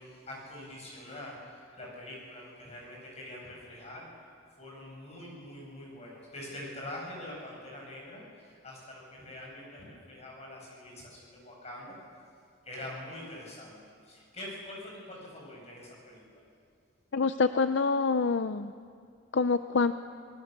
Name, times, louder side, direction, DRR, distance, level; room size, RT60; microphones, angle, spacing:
voice 1, 0.0-4.1 4.6-12.0 12.6-16.4, left 1 dB, 30° left, -3 dB, 7.4 m, -44 dB
voice 2, 17.1-18.7 19.3-19.9, left 4 dB, 60° left, 11 dB, 0.5 m, -26 dB
26.0 x 19.0 x 6.8 m, 2.2 s
head